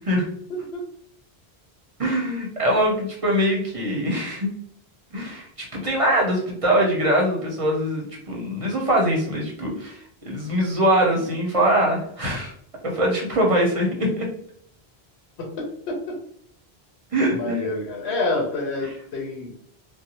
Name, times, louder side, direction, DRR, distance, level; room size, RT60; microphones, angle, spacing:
voice 1, 0.5-0.8 15.4-16.2 17.4-19.5, left 2 dB, 90° left, 0 dB, 0.9 m, -28 dB
voice 2, 2.0-4.5 5.1-12.5 12.8-14.3 17.1-17.6, equal, 40° right, -2 dB, 0.6 m, -22 dB
2.6 x 2.0 x 2.8 m, 0.65 s
omnidirectional pair, 1.1 m